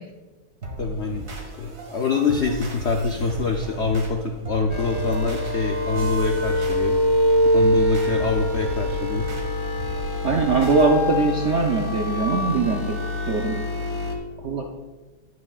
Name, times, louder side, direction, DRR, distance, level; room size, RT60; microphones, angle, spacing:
sound 1, 0.6-10.9, right 2 dB, 45° right, 1.9 m, -36 dB
voice 1, 0.8-7.0 7.5-9.3, left 4 dB, 90° left, 4 dB, 0.6 m, -25 dB
sound 2, 4.7-14.1, left 1 dB, 25° left, 0.7 m, -24 dB
voice 2, 10.2-13.6 14.4-14.6, right 4 dB, 70° right, 1 dB, 0.6 m, -22 dB
18.0 x 6.2 x 2.4 m, 1.3 s
omnidirectional pair, 2.0 m